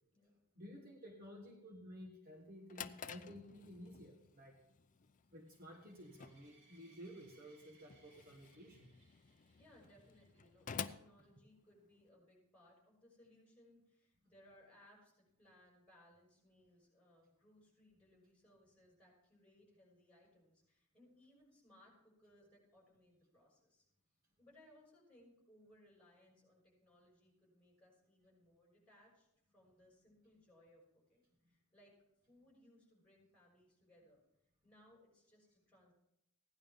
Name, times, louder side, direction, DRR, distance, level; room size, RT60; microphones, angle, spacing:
voice 1, 0.6-4.6 5.3-8.9, equal, 40° right, 2 dB, 1.4 m, -54 dB
Drawer open or close, 2.4-12.1, left 7 dB, 35° left, 0.4 m, -52 dB
sound 1, 5.4-10.7, right 2 dB, 70° right, 5.1 m, -71 dB
voice 2, 9.6-23.9 24.4-32.0 32.3-34.2 34.6-35.9, left 1 dB, 5° left, -4 dB, 6.1 m, -67 dB
16.0 x 11.0 x 3.6 m, 0.80 s
head